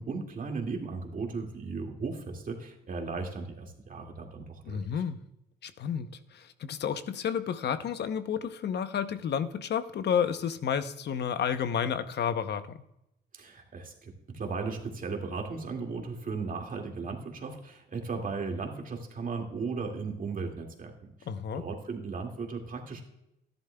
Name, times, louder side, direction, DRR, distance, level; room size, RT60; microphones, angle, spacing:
voice 1, 0.0-4.8 13.3-20.9 21.5-23.0, right 4 dB, 45° right, 2 dB, 2.1 m, -36 dB
voice 2, 4.7-5.2 5.6-12.8 21.3-21.6, left 8 dB, 60° left, 11 dB, 0.8 m, -31 dB
13.0 x 11.0 x 2.3 m, 0.85 s
cardioid pair, 90°, 20 cm